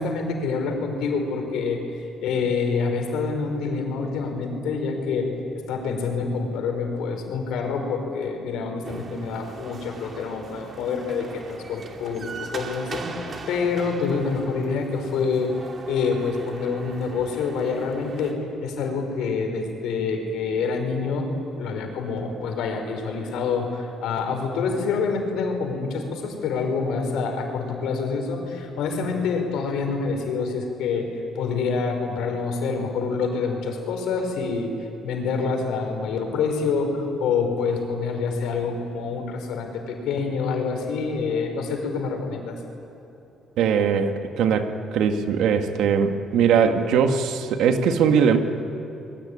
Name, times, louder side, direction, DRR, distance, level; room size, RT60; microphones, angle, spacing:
voice 1, 0.0-1.8 2.2-5.3 5.5-15.5 15.9-21.3 21.6-31.1 31.3-42.5, left 4 dB, 85° left, 4 dB, 4.9 m, -27 dB
sound 1, 8.8-18.3, right 4 dB, 35° right, 2.3 m, -39 dB
voice 2, 43.6-48.4, right 7 dB, 80° right, 6 dB, 1.9 m, -20 dB
26.5 x 22.0 x 9.9 m, 2.9 s
cardioid pair, 155°, 0 cm